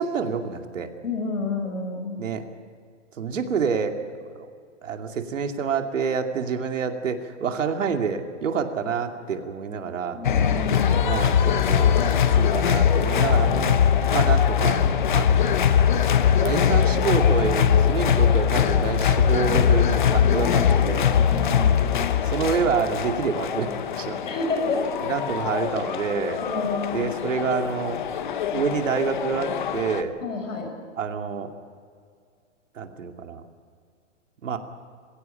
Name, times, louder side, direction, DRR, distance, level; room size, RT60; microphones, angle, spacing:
voice 1, 0.0-0.9 2.2-2.5 3.2-4.5 4.8-10.2 10.7-13.8 14.1-14.8 15.1-15.5 16.4-21.1 21.4-21.6 22.2-24.3 25.0-26.4 26.9-28.0 28.5-30.1 31.0-31.5 32.8-33.5 34.4-34.6, right 6 dB, 80° right, 5 dB, 2.6 m, -28 dB
voice 2, 1.0-2.3 10.1-11.0 20.2-20.6 21.2-22.1 24.2-24.9 26.4-27.2 30.2-30.7, left 3 dB, 90° left, 5 dB, 6.7 m, -30 dB
sound 1, 10.2-30.0, left 8 dB, 40° left, 1.0 m, -21 dB
22.5 x 16.5 x 8.6 m, 2.2 s
hypercardioid pair, 180°, 38 cm